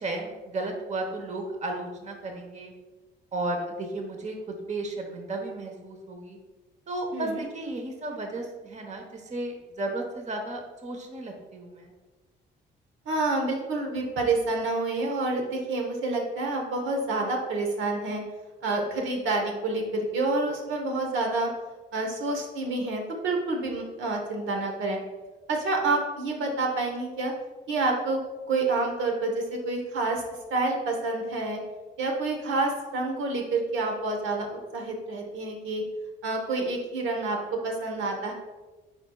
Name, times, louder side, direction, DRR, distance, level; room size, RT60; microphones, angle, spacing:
voice 1, 0.0-2.7 3.3-6.4 6.9-11.9, right 2 dB, 35° right, 3 dB, 1.0 m, -34 dB
voice 2, 13.1-18.2 18.6-21.5 21.9-25.0 25.5-27.3 27.7-28.2 28.5-30.2 30.5-31.6 32.0-34.5 34.7-35.8 36.2-38.3, right 3 dB, 75° right, 1 dB, 1.1 m, -28 dB
9.1 x 4.5 x 2.3 m, 1.3 s
cardioid pair, 90°, 20 cm